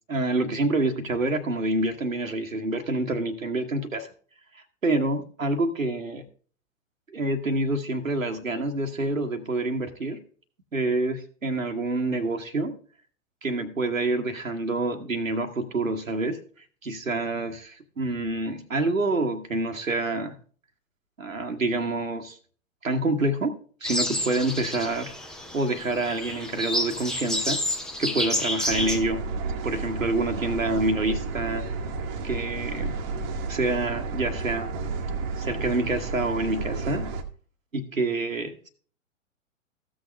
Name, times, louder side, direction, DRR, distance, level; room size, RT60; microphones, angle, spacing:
voice 1, 0.1-4.1 4.8-6.2 7.1-10.2 10.7-12.8 13.4-16.4 16.8-20.3 21.2-22.4 22.8-25.1 25.5-27.6 28.0-29.2 29.6-31.7 32.2-33.0 33.5-34.7 35.4-37.1 37.7-38.7, right 2 dB, 85° right, 4 dB, 1.2 m, -27 dB
sound 1, 23.8-29.0, left 1 dB, ahead, 0.5 m, -29 dB
sound 2, 28.7-37.2, right 4 dB, 35° right, 1.1 m, -32 dB
14.5 x 6.3 x 3.2 m, 0.42 s
figure-of-eight pair, 105°, 39 cm